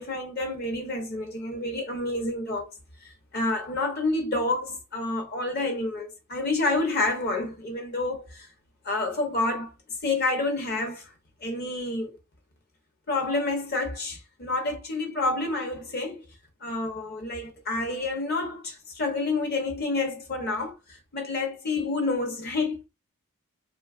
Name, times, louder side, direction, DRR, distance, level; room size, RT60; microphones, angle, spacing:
voice 1, 0.0-2.7 3.0-8.5 8.8-9.7 10.0-11.1 11.4-12.2 13.1-16.2 16.6-22.9, left 2 dB, 45° left, 0.7 m, -29 dB
2.6 x 2.3 x 2.3 m
head